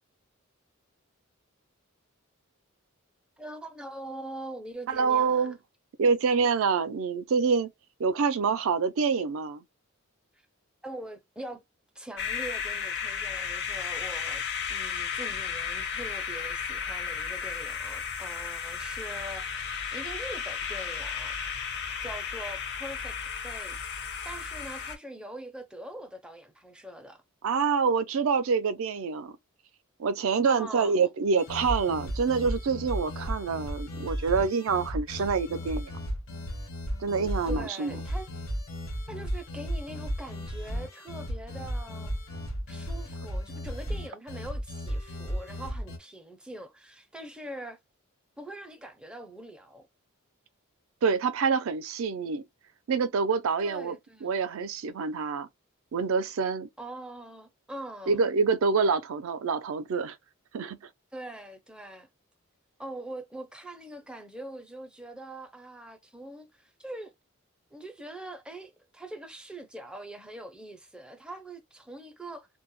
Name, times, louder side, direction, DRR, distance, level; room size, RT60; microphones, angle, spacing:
voice 1, 3.4-5.5 10.8-11.6 11.9-14.4 14.7-21.4 22.0-23.2 23.4-27.2 30.5-31.0 37.5-38.3 39.1-42.2 42.7-47.8 48.4-49.9 53.6-54.3 56.8-58.2 61.1-62.1 62.8-67.1 67.7-72.5, right 1 dB, 5° right, 0.4 m, -43 dB
voice 2, 4.9-5.6 6.0-7.7 8.0-9.6 27.4-29.4 30.0-35.9 37.0-38.0 51.0-52.4 52.9-55.5 55.9-56.7 58.1-60.2 60.5-60.8, right 5 dB, 70° right, 0.4 m, -26 dB
sound 1, 12.2-25.0, left 7 dB, 50° left, 0.6 m, -34 dB
sound 2, 31.4-46.0, equal, 75° left, 1.0 m, -35 dB
2.2 x 2.0 x 2.9 m
head